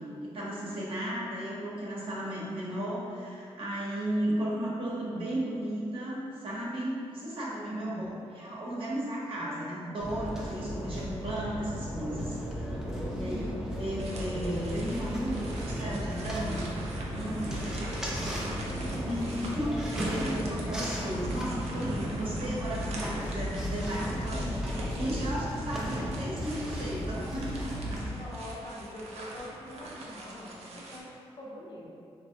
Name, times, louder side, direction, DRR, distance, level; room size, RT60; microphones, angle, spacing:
voice 1, 0.2-12.4 13.1-17.7 18.1-18.6 19.0-28.0, right 1 dB, 55° right, -6 dB, 0.8 m, -35 dB
voice 2, 7.6-8.1 17.2-18.2 28.0-31.9, left 1 dB, 40° left, -4 dB, 0.6 m, -45 dB
sound 1, 10.0-28.1, equal, 5° right, 0.5 m, -35 dB
sound 2, 14.0-31.0, right 2 dB, 80° right, 0.4 m, -44 dB
3.3 x 2.1 x 2.7 m, 2.4 s
cardioid pair, 75°, 11 cm